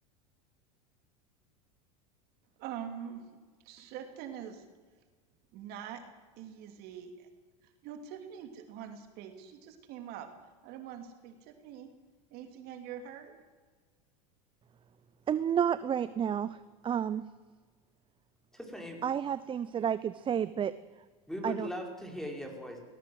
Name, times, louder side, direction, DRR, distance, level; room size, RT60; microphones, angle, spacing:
voice 1, 2.6-3.2 3.6-4.6 5.5-6.0 6.4-7.3 7.6-10.3 10.6-11.9 12.3-13.3, right 9 dB, 55° right, 6 dB, 2.9 m, -44 dB
voice 2, 15.3-16.6 16.8-17.3 19.0-20.7 21.4-21.7, right 8 dB, 25° right, 16 dB, 0.7 m, -30 dB
voice 3, 18.5-19.0 21.3-22.8, left 1 dB, ahead, 3 dB, 5.1 m, -39 dB
18.5 x 18.0 x 7.9 m, 1.5 s
hypercardioid pair, 90°, 19 cm